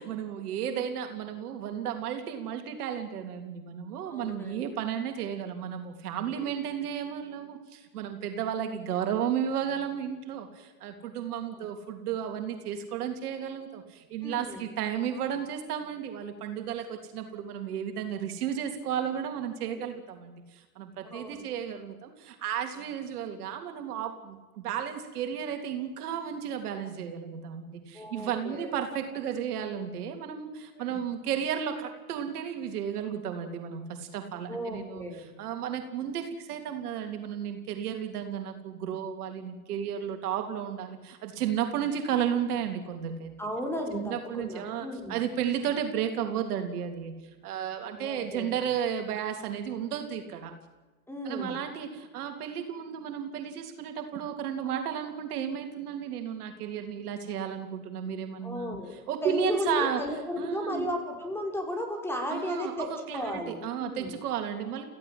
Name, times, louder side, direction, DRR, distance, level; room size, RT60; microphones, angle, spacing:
voice 1, 0.0-35.0 35.4-43.4 43.9-50.6 51.2-58.8 59.1-60.0 60.4-60.9 62.3-64.8, right 8 dB, 75° right, 5 dB, 3.4 m, -33 dB
voice 2, 4.1-4.7 6.2-6.5 11.3-11.7 14.2-14.6 19.6-19.7 21.0-21.4 27.9-28.7 30.7-31.0 34.5-35.2 43.4-45.2 48.0-48.5 51.1-51.6 58.4-58.9 59.2-64.1, left 1 dB, 5° left, 2 dB, 5.9 m, -35 dB
29.0 x 16.0 x 7.9 m, 1.2 s
hypercardioid pair, 110°, 46 cm